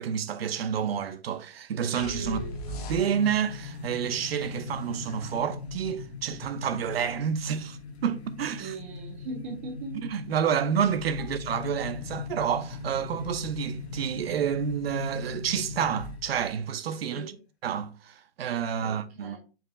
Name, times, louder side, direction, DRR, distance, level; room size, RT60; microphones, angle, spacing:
voice 1, 0.0-2.4 2.9-8.7 9.9-17.3 17.6-19.4, right 8 dB, 70° right, 0.6 m, -29 dB
sound 1, 2.0-3.5, equal, 40° left, 0.7 m, -37 dB
voice 2, 2.2-2.6 8.6-10.0 17.1-17.4 18.8-19.4, right 3 dB, 10° right, 0.4 m, -40 dB
sound 2, 2.3-16.6, left 4 dB, 85° left, 0.9 m, -39 dB
sound 3, 2.7-4.7, right 6 dB, 90° right, 1.7 m, -50 dB
4.8 x 2.1 x 3.6 m
hypercardioid pair, 165°, 31 cm